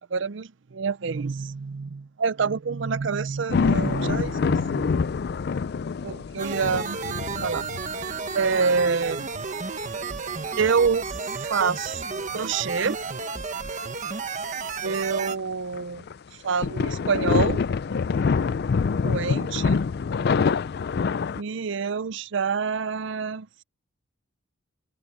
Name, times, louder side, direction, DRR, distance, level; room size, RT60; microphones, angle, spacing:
voice 1, 0.1-5.0 6.0-7.0 7.4-7.7 8.3-9.3 10.6-11.1 11.3-13.0 14.8-16.0 16.4-17.6 19.0-19.8 21.4-23.5, right 5 dB, 60° right, 0.5 m, -27 dB
sound 1, 3.5-8.2 9.3-9.4 10.1-10.3 11.9-12.0 15.7-16.1 16.6-21.4, left 5 dB, 50° left, 0.4 m, -25 dB
sound 2, 6.4-15.4, right 4 dB, 35° right, 1.2 m, -32 dB
head